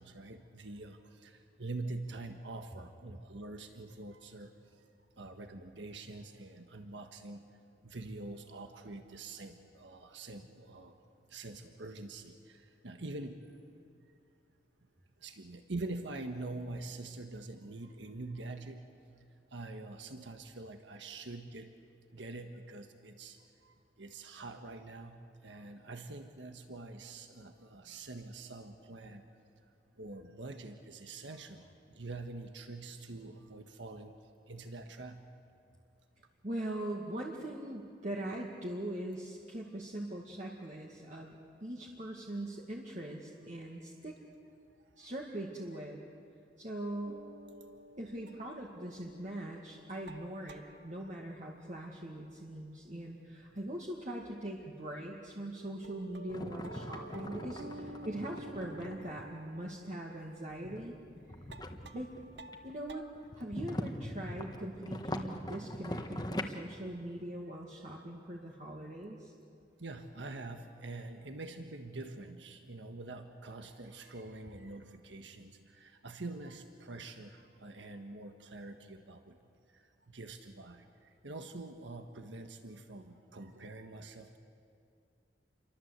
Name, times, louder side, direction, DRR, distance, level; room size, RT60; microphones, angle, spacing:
voice 1, 0.0-4.5 5.2-7.4 7.8-11.0 11.3-13.4 15.2-18.8 19.5-21.7 22.1-29.2 30.0-34.1 34.5-35.2 43.5-43.6 45.0-45.1 49.8-50.0 69.8-79.4 79.7-84.4, right 2 dB, 90° right, 6 dB, 1.5 m, -45 dB
voice 2, 36.4-44.2 45.0-46.0 46.6-47.2 48.0-61.0 61.3-61.4 61.9-62.1 62.6-63.1 63.3-69.3, right 1 dB, 40° right, -2 dB, 2.1 m, -41 dB
sound 1, 47.0-53.1 53.3-54.3 54.6-54.7 55.3-55.4 55.8-63.0, right 1 dB, 70° right, 1.2 m, -52 dB
sound 2, 56.3-59.3 60.5-62.8 63.2-66.4, left 1 dB, 20° left, 1.4 m, -42 dB
29.0 x 23.5 x 8.2 m, 2.5 s
head